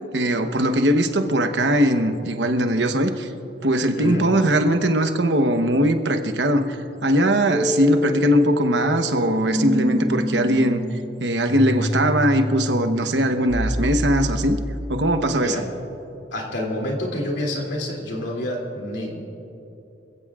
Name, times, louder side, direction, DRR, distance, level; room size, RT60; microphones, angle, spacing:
voice 1, 0.1-3.3 3.6-6.8 7.0-10.8 11.2-14.6 14.9-15.6, right 1 dB, 85° right, 7 dB, 1.0 m, -20 dB
voice 2, 3.9-4.3 15.4-15.6 16.3-19.2, left 1 dB, 90° left, -1 dB, 2.7 m, -28 dB
sound 1, 7.5-15.4, equal, 5° right, 0.4 m, -27 dB
26.0 x 15.5 x 2.4 m, 2.9 s
head